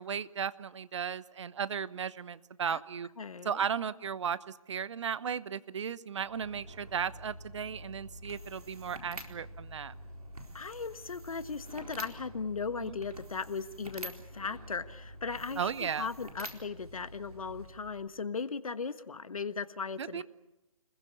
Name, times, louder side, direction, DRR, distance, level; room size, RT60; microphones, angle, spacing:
voice 1, 0.0-3.1 3.4-9.9 12.8-13.0 15.6-16.1 20.0-20.2, right 7 dB, 50° right, 17 dB, 0.9 m, -35 dB
voice 2, 3.2-3.6 10.5-20.2, left 5 dB, 70° left, 13 dB, 1.5 m, -37 dB
sound 1, 6.2-18.2, equal, 85° right, 4.1 m, -47 dB
27.5 x 21.0 x 8.4 m, 0.97 s
figure-of-eight pair, 145°, 19 cm